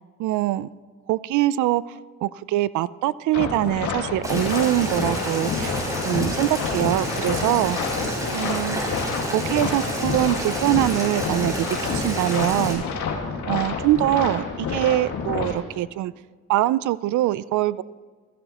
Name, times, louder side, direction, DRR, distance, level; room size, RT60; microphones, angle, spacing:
voice 1, 0.2-0.7 1.1-5.7 6.0-7.8 8.3-8.8 9.3-12.8 13.5-16.1 16.5-17.8, right 15 dB, 75° right, 19 dB, 0.5 m, -23 dB
sound 1, 3.3-15.5, left 5 dB, 70° left, 2.0 m, -29 dB
Boiling, 4.2-12.7, equal, 10° right, 4.9 m, -30 dB
16.0 x 14.5 x 3.0 m, 1.5 s
cardioid pair, 90°, 30 cm